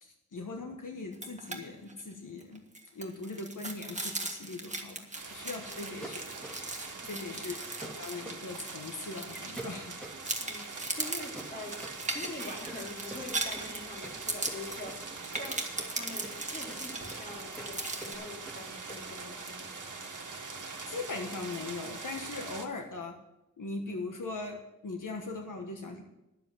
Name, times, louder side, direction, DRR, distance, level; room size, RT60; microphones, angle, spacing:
voice 1, 0.0-2.6 2.9-6.2 7.1-10.0 20.9-23.2 23.6-26.0, left 3 dB, 90° left, 3 dB, 1.4 m, -40 dB
sound 1, 1.1-1.6 1.9-2.0 2.4-9.9 10.2-18.1, right 2 dB, 25° right, 1.6 m, -39 dB
sound 2, 5.1-22.6, right 4 dB, 80° right, 1.4 m, -43 dB
sound 3, 6.0-6.8 7.8-8.4 9.6-10.2 11.3-19.0, right 2 dB, 5° left, 2.6 m, -46 dB
voice 2, 7.0-7.3 10.4-11.7 12.1-14.9 15.3-15.6 15.9-19.7, left 2 dB, 30° left, -1 dB, 3.0 m, -44 dB
11.0 x 7.5 x 7.5 m, 0.90 s
wide cardioid pair, 85°, 31 cm